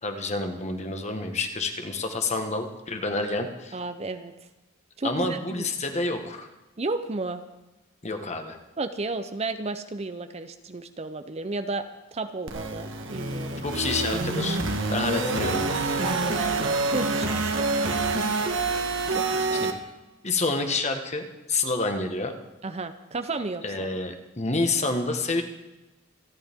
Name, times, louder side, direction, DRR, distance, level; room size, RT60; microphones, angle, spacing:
voice 1, 0.0-3.8 5.0-6.5 8.0-8.6 13.6-14.6 14.9-15.6 19.5-19.7 20.2-22.3 23.6-25.4, left 3 dB, 30° left, 5 dB, 1.4 m, -28 dB
voice 2, 3.7-4.3 5.0-5.7 6.8-7.4 8.8-13.7 16.0-17.7 19.1-19.7 22.6-23.9, right 3 dB, 30° right, 9 dB, 0.6 m, -33 dB
sound 1, 12.5-19.7, right 3 dB, 60° right, 1.5 m, -27 dB
27.0 x 11.0 x 3.6 m, 1.1 s
head